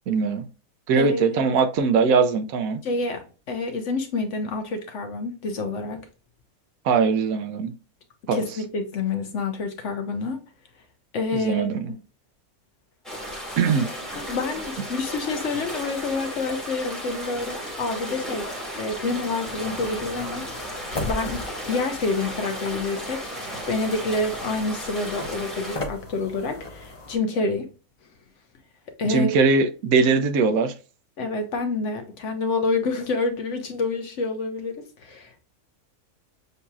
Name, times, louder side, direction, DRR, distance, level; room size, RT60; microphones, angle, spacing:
voice 1, 0.1-0.5 0.9-2.8 6.8-7.7 8.3-8.4 11.3-11.9 13.6-13.9 29.0-30.7, right 5 dB, 75° right, 1.0 m, -21 dB
voice 2, 1.0-1.4 2.8-6.1 8.3-10.4 11.1-11.7 14.1-18.5 18.8-20.5 21.0-27.7 29.0-29.3 31.2-35.4, left 3 dB, 60° left, 1.0 m, -28 dB
sound 1, 13.0-25.8, equal, ahead, 1.3 m, -34 dB
sound 2, 19.4-27.2, left 2 dB, 30° left, 0.6 m, -38 dB
6.7 x 2.8 x 2.3 m
omnidirectional pair, 1.5 m